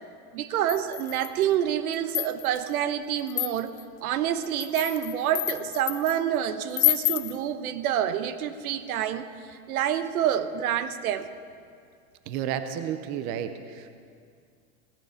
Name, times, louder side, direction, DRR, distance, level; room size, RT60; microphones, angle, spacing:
voice 1, 0.3-3.7 4.0-11.3, right 10 dB, 70° right, 11 dB, 1.1 m, -27 dB
sound 1, 0.7-1.4 1.9-2.6 3.3-3.8 4.4-6.2 6.7-7.4, left 18 dB, 50° left, 0.8 m, -28 dB
voice 2, 12.3-13.9, right 9 dB, 25° right, 9 dB, 0.4 m, -32 dB
17.0 x 13.0 x 5.7 m, 2.3 s
supercardioid pair, 150°, 44 cm